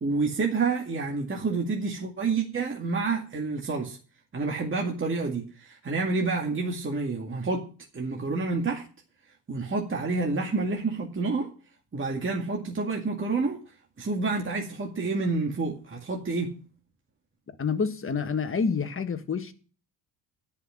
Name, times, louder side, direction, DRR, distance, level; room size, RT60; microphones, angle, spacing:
voice 1, 0.0-4.0 4.3-7.7 7.9-8.9 9.5-11.5 11.9-13.6 14.0-16.5, right 3 dB, 30° right, 2.1 m, -28 dB
voice 2, 17.6-19.5, left 5 dB, 30° left, 1.6 m, -28 dB
9.6 x 5.8 x 8.4 m
supercardioid pair, 75°, 43 cm